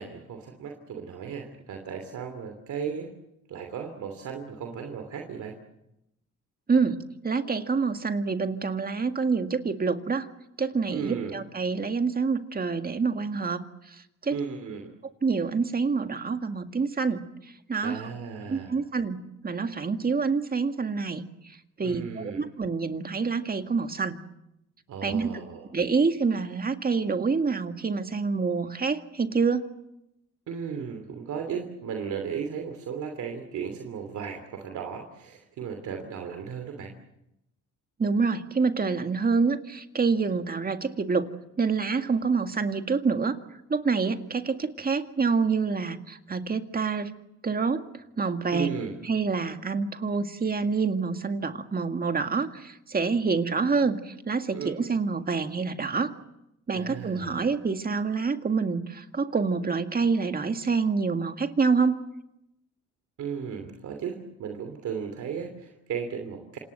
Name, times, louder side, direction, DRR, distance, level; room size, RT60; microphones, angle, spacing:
voice 1, 0.0-3.1 3.5-5.6 10.9-11.4 14.3-14.9 17.8-18.8 21.8-22.4 24.9-25.7 30.5-36.9 48.5-48.9 54.5-54.9 56.8-57.6 63.2-66.6, right 6 dB, 70° right, 4 dB, 3.0 m, -35 dB
voice 2, 6.7-10.3 10.6-13.6 14.2-14.3 15.2-17.2 17.7-18.0 18.5-21.2 21.8-24.2 25.0-25.3 25.7-29.6 38.0-41.3 41.6-43.4 43.7-47.1 47.4-47.8 48.2-48.7 49.1-56.1 56.7-62.0, right 4 dB, 30° right, 7 dB, 1.9 m, -27 dB
27.0 x 19.5 x 8.0 m, 0.86 s
cardioid pair, 90°, 30 cm